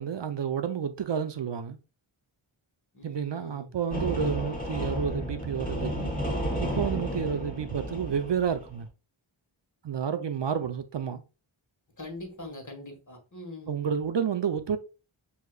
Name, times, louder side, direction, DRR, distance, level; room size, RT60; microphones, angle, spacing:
voice 1, 0.0-1.8 3.0-6.1 6.6-8.9 9.8-11.2 13.7-14.8, right 7 dB, 60° right, 0.6 m, -30 dB
voice 2, 2.9-3.7 12.0-13.8, left 1 dB, 35° left, 1.5 m, -42 dB
sound 1, 3.9-8.8, equal, 15° left, 1.2 m, -32 dB
6.3 x 2.8 x 2.3 m
wide cardioid pair, 70°, 49 cm